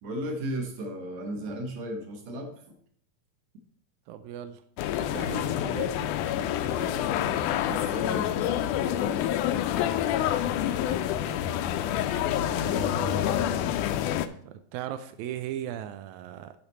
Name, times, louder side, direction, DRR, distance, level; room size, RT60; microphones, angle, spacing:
voice 1, 0.0-2.8 6.7-8.6 8.9-9.2, equal, 60° right, 3 dB, 2.3 m, -36 dB
voice 2, 4.1-4.6 4.9-6.1 10.5-11.4 11.8-13.8 14.4-16.5, right 11 dB, 85° right, 9 dB, 1.7 m, -39 dB
sound 1, 4.8-14.3, left 11 dB, 80° left, 1.9 m, -27 dB
10.5 x 5.1 x 4.1 m, 0.63 s
omnidirectional pair, 3.9 m